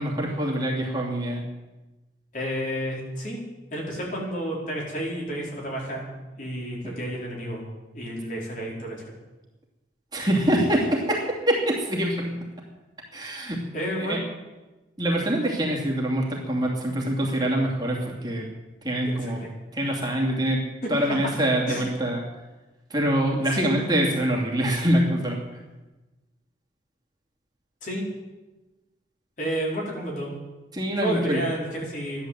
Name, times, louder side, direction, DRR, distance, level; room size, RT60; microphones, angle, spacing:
voice 1, 0.0-1.4 10.1-12.4 13.1-13.6 14.0-14.2 15.0-18.5 18.8-19.4 19.7-20.6 20.9-22.2 22.9-25.4 30.7-31.4, right 1 dB, 25° right, -2 dB, 2.8 m, -25 dB
voice 2, 2.3-3.4 3.7-6.1 6.4-7.7 7.9-9.1 13.7-14.2 19.1-19.5 20.9-21.0 21.7-21.8 23.5-23.6 27.8-28.1 29.4-30.3 31.0-32.3, equal, 45° left, -3 dB, 4.9 m, -31 dB
14.0 x 11.5 x 7.9 m, 1.1 s
head